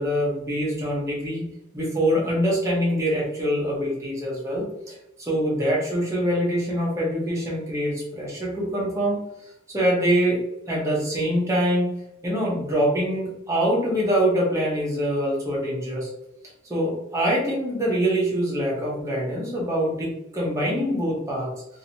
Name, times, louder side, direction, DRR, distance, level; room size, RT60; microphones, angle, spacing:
voice 1, 0.0-1.5 1.7-9.2 9.7-10.4 10.7-11.9 12.2-16.1 16.7-21.5, equal, 15° right, -5 dB, 0.9 m, -24 dB
2.9 x 2.7 x 2.8 m, 0.85 s
head